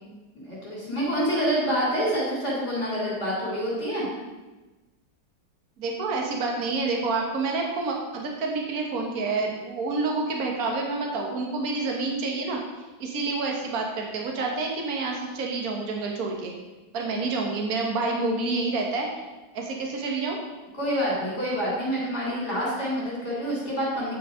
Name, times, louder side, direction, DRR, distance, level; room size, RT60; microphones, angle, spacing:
voice 1, 0.3-4.1 20.8-24.1, equal, 40° left, -6 dB, 4.1 m, -27 dB
voice 2, 5.8-12.6 13.0-16.5 16.9-19.1 19.5-20.4, right 3 dB, 55° right, 0 dB, 1.7 m, -28 dB
9.9 x 6.0 x 5.0 m, 1.1 s
omnidirectional pair, 1.9 m